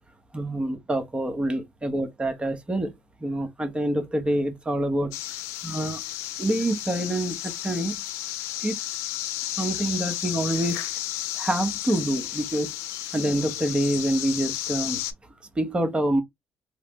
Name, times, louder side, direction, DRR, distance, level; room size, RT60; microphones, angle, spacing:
voice 1, 0.3-2.9 3.2-5.1 5.6-6.0 6.4-8.0 8.6-8.8 9.6-10.8 11.4-12.7 13.1-15.0 15.6-16.2, right 1 dB, 20° right, 1.0 m, -26 dB
sound 1, 5.1-15.1, left 13 dB, 85° left, 0.4 m, -33 dB
3.2 x 2.1 x 2.9 m
supercardioid pair, 60°, 5 cm